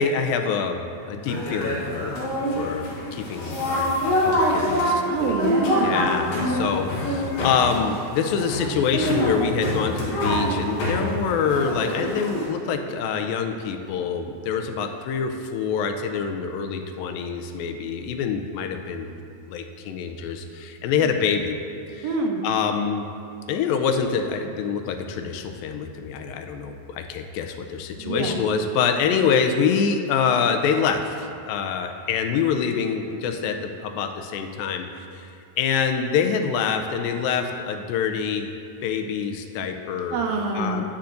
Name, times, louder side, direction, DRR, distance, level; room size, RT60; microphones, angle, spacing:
voice 1, 0.0-2.2 2.6-2.9 3.1-5.4 5.8-19.1 19.5-21.6 21.9-22.1 22.4-23.1 23.5-35.3 35.6-38.5 38.8-40.2 40.6-40.8, left 6 dB, 90° left, 6 dB, 2.4 m, -25 dB
sound 1, 1.2-12.5, equal, 60° left, 2.7 m, -25 dB
voice 2, 5.1-6.1 21.0-21.2 22.0-22.4 28.0-28.5 40.1-40.8, right 3 dB, 85° right, 1 dB, 2.6 m, -26 dB
10.0 x 8.4 x 2.6 m, 2.6 s
omnidirectional pair, 4.0 m